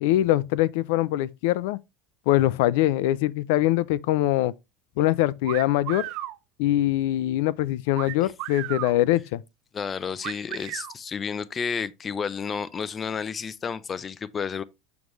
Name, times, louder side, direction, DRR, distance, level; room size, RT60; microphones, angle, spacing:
voice 1, 0.0-1.8 2.3-4.5 5.0-6.1 6.6-9.4, left 14 dB, 80° left, 0.4 m, -23 dB
sound 1, 5.4-6.4 7.9-9.0 10.2-10.9, right 16 dB, 60° right, 0.6 m, -34 dB
voice 2, 9.7-14.6, left 6 dB, 25° left, 0.5 m, -31 dB
7.1 x 6.3 x 3.1 m
cardioid pair, 145°, 0 cm